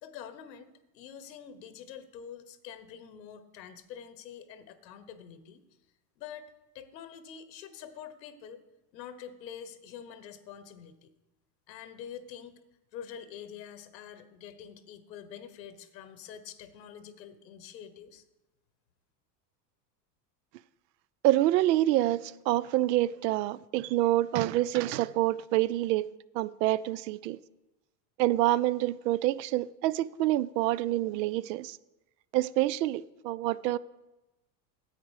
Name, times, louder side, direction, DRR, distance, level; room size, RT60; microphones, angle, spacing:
voice 1, 0.0-5.6 6.2-8.6 8.9-11.1 11.7-12.6 12.9-18.2, left 8 dB, 85° left, 1.0 m, -46 dB
voice 2, 21.2-26.1 26.3-27.4 28.2-31.8 32.3-33.8, right 15 dB, 80° right, 0.5 m, -27 dB
9.9 x 8.2 x 4.8 m
hypercardioid pair, 105°, 50 cm